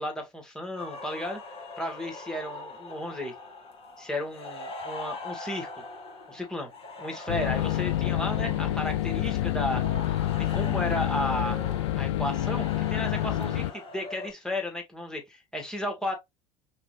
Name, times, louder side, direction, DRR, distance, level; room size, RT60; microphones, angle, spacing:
voice 1, 0.0-1.4 1.8-3.3 4.0-5.8 6.3-6.7 7.0-9.8 10.5-11.6 12.0-16.1, left 1 dB, 5° left, 2.0 m, -33 dB
sound 1, 0.8-14.3, left 3 dB, 35° left, 2.0 m, -41 dB
sound 2, 7.3-13.7, left 14 dB, 65° left, 0.4 m, -28 dB
5.7 x 2.7 x 3.4 m
figure-of-eight pair, 70°, 16 cm